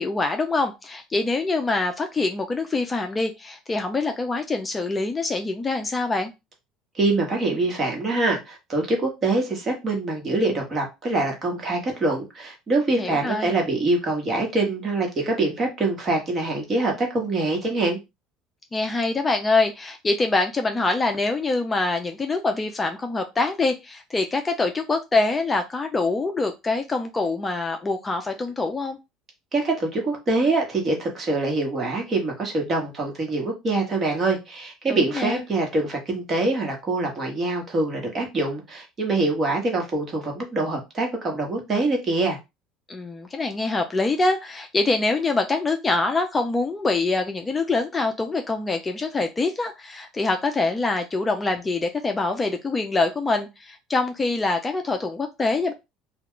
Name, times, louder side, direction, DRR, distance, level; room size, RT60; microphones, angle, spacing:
voice 1, 0.0-6.3 13.0-13.6 18.7-29.0 34.9-35.4 42.9-55.7, left 3 dB, 20° left, 6 dB, 0.4 m, -25 dB
voice 2, 6.9-18.0 29.5-42.4, right 2 dB, 30° right, 1 dB, 1.1 m, -24 dB
2.3 x 2.2 x 3.6 m, 0.24 s
supercardioid pair, 100°, 0 cm